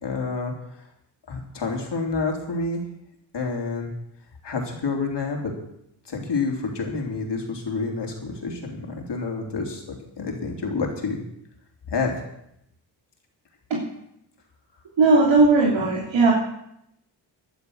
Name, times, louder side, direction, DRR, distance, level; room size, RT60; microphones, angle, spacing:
voice 1, 0.0-0.5 1.3-2.8 3.3-3.9 4.4-5.5 6.1-9.8 10.2-11.2 11.9-12.3, left 4 dB, 60° left, 1 dB, 3.6 m, -28 dB
voice 2, 15.0-16.3, right 3 dB, 75° right, -2 dB, 3.0 m, -17 dB
12.5 x 11.0 x 6.6 m, 0.78 s
cardioid pair, 55°, 47 cm